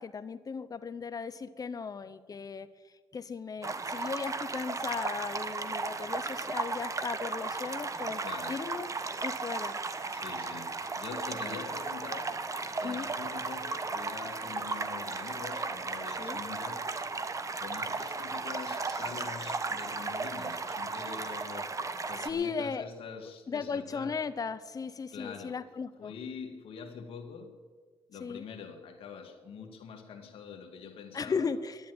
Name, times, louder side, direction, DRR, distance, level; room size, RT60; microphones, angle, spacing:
voice 1, 0.0-2.7 3.1-8.2 8.5-8.9 9.2-9.8 11.4-11.6 12.8-13.1 16.2-16.4 22.2-22.9 23.5-26.1 28.2-28.4 31.1-31.8, left 5 dB, 40° left, 0.8 m, -36 dB
sound 1, 3.6-22.3, right 3 dB, 35° right, 1.1 m, -35 dB
voice 2, 8.2-8.6 10.1-12.5 12.8-16.9 17.6-21.8 22.1-24.2 25.1-25.7 26.0-27.6 28.1-31.5, left 6 dB, 80° left, 1.8 m, -44 dB
10.5 x 10.0 x 9.5 m
cardioid pair, 75°, 9 cm